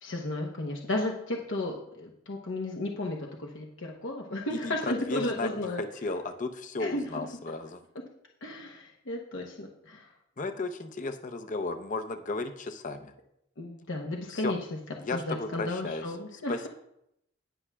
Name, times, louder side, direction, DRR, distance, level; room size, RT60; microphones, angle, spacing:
voice 1, 0.0-5.8 6.8-7.0 8.4-10.1 13.6-14.6 15.1-16.7, left 2 dB, 65° left, 1 dB, 0.9 m, -34 dB
voice 2, 4.5-7.8 10.4-13.1 14.3-14.5 15.0-16.0 16.3-16.7, left 3 dB, 40° left, 8 dB, 0.6 m, -34 dB
18.0 x 6.0 x 2.3 m, 0.79 s
head